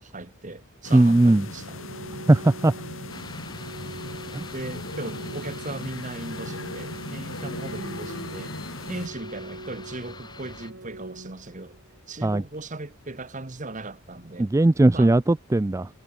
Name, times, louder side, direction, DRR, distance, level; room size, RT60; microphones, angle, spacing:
voice 1, 0.0-1.8 4.5-8.6 8.9-11.8 12.1-14.5 14.9-15.1, right 2 dB, 35° right, 1.6 m, -38 dB
sound 1, 0.8-9.1, left 2 dB, 65° left, 6.9 m, -38 dB
voice 2, 0.9-1.4 2.3-2.7 4.3-4.4 12.2-12.4 14.4-15.9, right 2 dB, 15° right, 0.3 m, -18 dB
Organ, 1.2-12.2, right 2 dB, 65° right, 2.3 m, -43 dB
sound 2, 3.1-10.7, left 3 dB, 20° left, 1.9 m, -45 dB
head